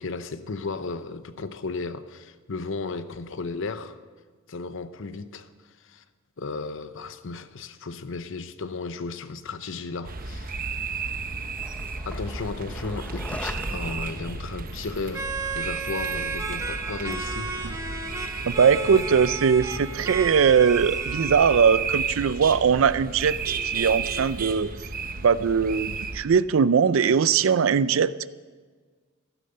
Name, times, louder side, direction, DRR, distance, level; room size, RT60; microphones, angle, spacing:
voice 1, 0.0-4.0 4.5-5.5 5.8-6.0 6.4-10.6 12.0-15.3 15.5-17.8 18.9-19.0, left 4 dB, 65° left, 0.8 m, -34 dB
sound 1, 10.0-26.2, right 4 dB, 45° right, 1.0 m, -33 dB
Skateboard, 11.2-19.5, left 1 dB, 5° left, 0.7 m, -44 dB
sound 2, 15.1-22.0, right 4 dB, 15° right, 1.2 m, -34 dB
voice 2, 18.5-23.4 23.6-24.7 25.2-28.3, right 6 dB, 65° right, 0.4 m, -20 dB
15.0 x 12.0 x 6.7 m
head